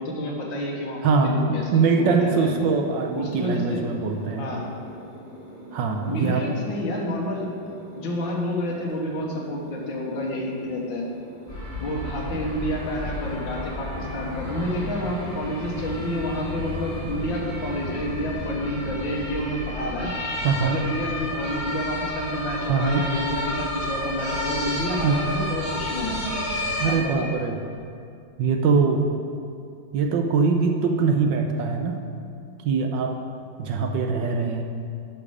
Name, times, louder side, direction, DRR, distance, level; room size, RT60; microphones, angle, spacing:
voice 1, 0.0-2.7 3.2-3.9 4.4-4.7 6.1-7.5 8.0-11.0 11.8-20.1 20.6-26.4 26.9-27.3, equal, 70° left, -1 dB, 2.0 m, -29 dB
voice 2, 1.0-4.5 5.7-6.4 20.4-20.8 22.7-23.0 25.0-25.2 26.8-27.6 28.4-29.1 29.9-32.0 32.6-33.2 33.6-34.6, right 5 dB, 70° right, 3 dB, 1.3 m, -22 dB
sound 1, 2.2-21.6, right 1 dB, 20° right, 1.5 m, -45 dB
sound 2, 11.5-26.9, left 1 dB, 10° left, 2.2 m, -31 dB
10.5 x 5.7 x 4.9 m, 2.4 s
omnidirectional pair, 2.2 m